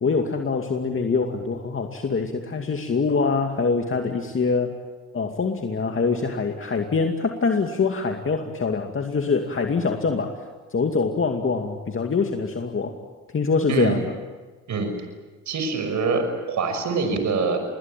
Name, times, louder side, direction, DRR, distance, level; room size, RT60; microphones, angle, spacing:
voice 1, 0.0-4.8 5.1-10.4 10.7-13.0 13.3-14.0, left 4 dB, 40° left, 3 dB, 2.4 m, -24 dB
voice 2, 13.7-14.0 14.7-14.9 15.5-17.6, right 4 dB, 60° right, 7 dB, 6.1 m, -24 dB
26.5 x 21.0 x 9.1 m, 1.3 s
supercardioid pair, 60°, 32 cm